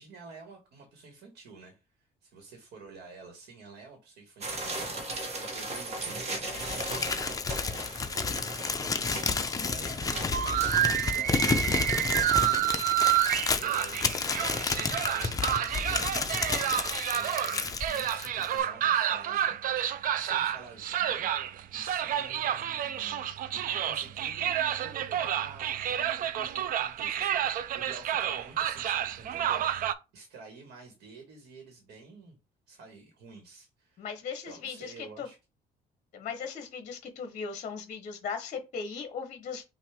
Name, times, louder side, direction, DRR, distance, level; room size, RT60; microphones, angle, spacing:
voice 1, 0.0-7.5 8.3-13.2 13.5-19.8 20.2-21.3 21.7-24.5 24.8-32.4 32.7-34.1 34.5-35.4, right 4 dB, 75° right, 1.5 m, -50 dB
sound 1, 4.4-11.2 11.7-11.8 12.0-12.1 12.6-12.9 13.3-13.4 13.7-13.8, right 2 dB, 40° right, 1.3 m, -37 dB
Crumpling crinkling, 6.5-18.6, left 4 dB, 20° left, 0.6 m, -31 dB
sound 2, 10.3-29.9, right 11 dB, 55° right, 0.5 m, -29 dB
voice 2, 34.0-35.3 36.1-39.6, left 6 dB, 45° left, 0.9 m, -38 dB
5.6 x 2.6 x 3.5 m
cardioid pair, 110°, 17 cm